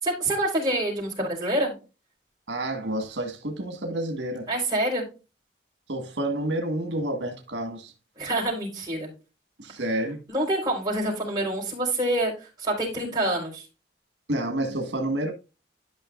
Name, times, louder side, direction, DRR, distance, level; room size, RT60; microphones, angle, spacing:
voice 1, 0.0-1.7 4.5-5.0 8.2-9.1 10.3-13.6, right 1 dB, 25° right, 4.5 m, -26 dB
voice 2, 2.5-4.5 5.9-7.9 9.6-10.2 14.3-15.3, right 1 dB, 80° right, 1.7 m, -29 dB
12.5 x 5.7 x 2.5 m
head